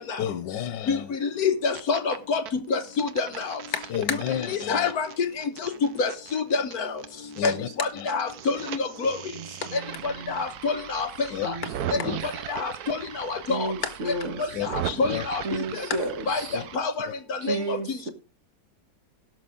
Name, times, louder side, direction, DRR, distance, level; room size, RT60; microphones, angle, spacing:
voice 1, 0.2-1.2 3.9-4.9 7.4-7.7 7.9-8.1 11.3-11.5 12.0-12.2 14.5-15.2 16.5-16.6, left 10 dB, 90° left, 12 dB, 1.4 m, -31 dB
voice 2, 0.9-3.6 4.1-4.2 4.5-5.1 5.4-5.7 6.0-7.0 7.4-9.2 9.7-11.5 11.9-13.7 14.1-14.2 14.4-15.4 15.7-15.9 16.3-16.4 16.7-18.1, left 4 dB, 60° left, 8 dB, 1.3 m, -28 dB
sound 1, 1.5-2.2 2.5-7.5 7.8-16.8, right 10 dB, 65° right, 1.2 m, -38 dB
voice 3, 9.3-10.4 11.4-12.2 13.5-14.5 15.4-16.6 17.4-18.1, right 2 dB, 45° right, 7 dB, 1.5 m, -33 dB
17.0 x 6.4 x 3.7 m, 0.33 s
omnidirectional pair, 1.9 m